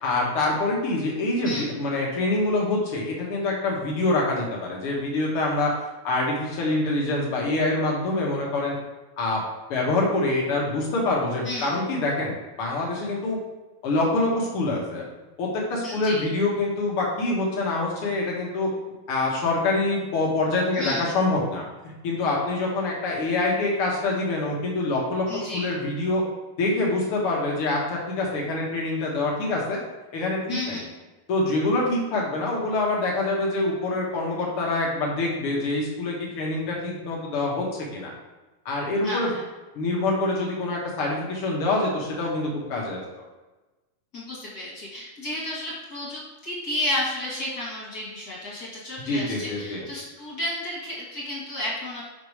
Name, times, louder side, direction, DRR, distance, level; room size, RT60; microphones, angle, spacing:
voice 1, 0.0-5.7 6.0-8.7 9.2-9.4 9.7-13.4 13.8-15.0 15.4-18.7 19.1-21.6 22.0-25.2 25.5-26.2 26.6-29.8 30.1-30.8 31.3-37.7 37.9-38.1 38.6-39.3 39.7-43.0 49.1-49.8, left 2 dB, 80° left, -3 dB, 1.2 m, -25 dB
voice 2, 11.4-11.8 15.8-16.2 20.7-21.1 25.3-25.7 30.5-30.9 39.0-39.4 44.1-52.0, left 1 dB, 40° left, -6 dB, 1.3 m, -32 dB
6.5 x 5.3 x 4.8 m, 1.1 s
omnidirectional pair, 4.3 m